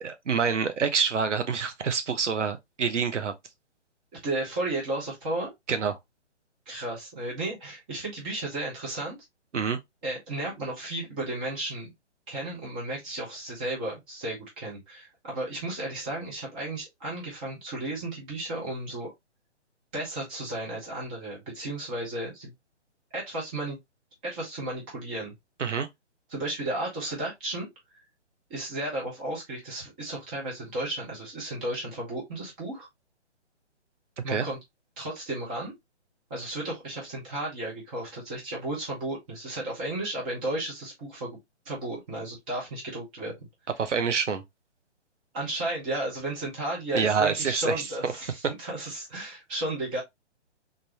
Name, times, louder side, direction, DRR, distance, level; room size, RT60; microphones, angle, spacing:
voice 1, 0.0-3.3 5.7-6.0 9.5-9.8 25.6-25.9 34.3-34.5 43.8-44.4 46.9-48.1, right 6 dB, 85° right, 1.1 m, -27 dB
voice 2, 4.2-5.5 6.7-9.2 10.0-11.9 12.3-19.1 19.9-22.5 23.1-23.8 24.2-25.3 26.3-27.7 28.5-32.9 34.2-34.6 35.0-35.7 36.3-41.4 41.6-43.5 45.3-50.0, right 1 dB, 10° right, 0.6 m, -33 dB
3.8 x 2.6 x 3.0 m
hypercardioid pair, 165°, 35 cm